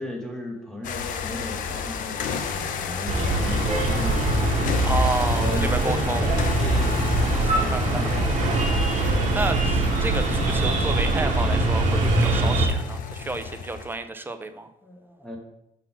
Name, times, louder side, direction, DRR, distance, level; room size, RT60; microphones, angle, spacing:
voice 1, 0.0-5.0 5.4-8.3 14.8-15.4, left 1 dB, 5° left, 1 dB, 1.1 m, -36 dB
sound 1, 0.8-14.0, left 6 dB, 80° left, 0.7 m, -32 dB
sound 2, 3.1-12.7, right 2 dB, 65° right, 1.5 m, -23 dB
voice 2, 4.8-6.3 7.2-8.2 8.8-14.7, right 3 dB, 15° right, 9 dB, 0.5 m, -31 dB
5.6 x 4.0 x 5.9 m, 0.84 s
cardioid pair, 140°, 13 cm